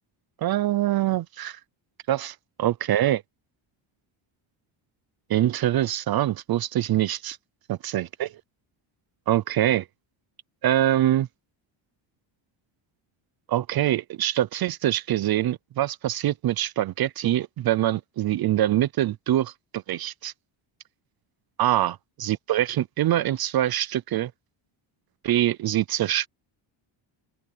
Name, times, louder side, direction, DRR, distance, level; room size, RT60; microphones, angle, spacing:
voice 1, 0.4-1.6 2.1-2.3 2.6-3.2 5.3-7.4 7.7-8.3 9.3-9.8 10.6-11.3 13.5-20.3 21.6-24.3 25.2-26.3, right 13 dB, 50° right, 0.6 m, -24 dB
open air
cardioid pair, 140°, 49 cm